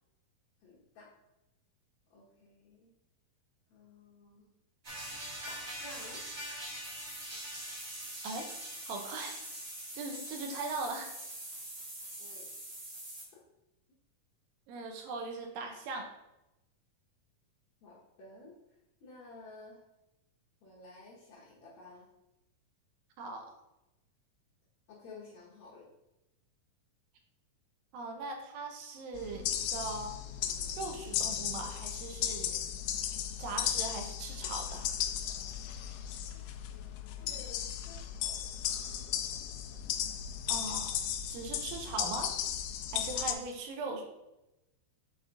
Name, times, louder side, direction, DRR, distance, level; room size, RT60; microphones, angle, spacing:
voice 1, 0.6-1.1 2.1-2.9 3.7-4.5 5.5-6.2 12.2-12.5 17.8-18.5 19.0-19.8 20.6-22.0 24.9-25.8 37.1-38.8, left 2 dB, 60° left, -7 dB, 2.2 m, -53 dB
sound 1, 4.8-13.2, right 1 dB, 50° right, 1.0 m, -43 dB
voice 2, 8.9-9.4 9.9-11.1 14.7-16.1 23.2-23.5 27.9-30.2 30.8-32.6 33.4-34.9 40.5-41.0 41.3-42.3 42.9-44.1, right 3 dB, 85° right, 3 dB, 2.6 m, -39 dB
sound 2, 29.1-43.3, left 10 dB, 80° left, 2.0 m, -36 dB
5.9 x 5.1 x 3.8 m, 0.94 s
omnidirectional pair, 4.1 m